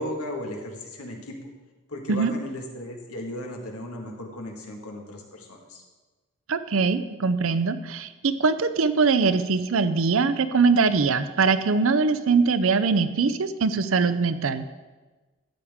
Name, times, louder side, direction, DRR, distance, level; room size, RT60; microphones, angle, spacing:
voice 1, 0.0-1.4 1.9-5.8, left 1 dB, 90° left, 1 dB, 1.8 m, -35 dB
voice 2, 6.5-14.7, right 4 dB, 70° right, 12 dB, 0.5 m, -22 dB
13.0 x 8.6 x 3.6 m, 1.2 s
head